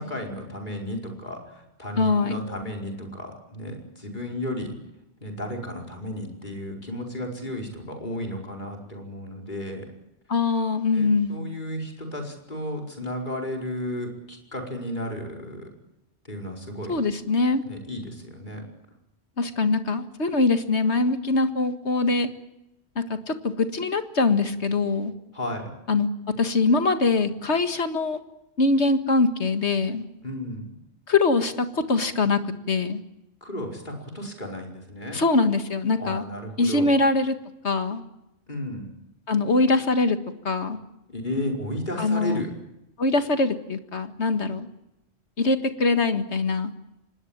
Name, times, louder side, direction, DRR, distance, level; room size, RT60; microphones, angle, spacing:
voice 1, 0.0-4.8 5.2-9.9 10.9-15.7 16.2-17.0 17.6-18.6 25.3-25.7 30.2-30.7 33.4-35.2 36.0-36.9 38.5-38.9 41.1-42.5, left 1 dB, 45° left, 2 dB, 5.2 m, -33 dB
voice 2, 2.0-2.4 10.3-11.4 16.9-17.6 19.4-22.3 23.0-25.1 25.9-26.1 26.4-28.2 28.6-30.1 31.1-33.0 35.1-36.2 36.6-37.3 37.6-38.0 39.3-40.2 40.4-40.8 42.0-42.4 43.0-44.7 45.4-46.7, left 3 dB, 85° left, 8 dB, 2.1 m, -23 dB
25.5 x 20.0 x 8.9 m, 0.90 s
omnidirectional pair, 1.1 m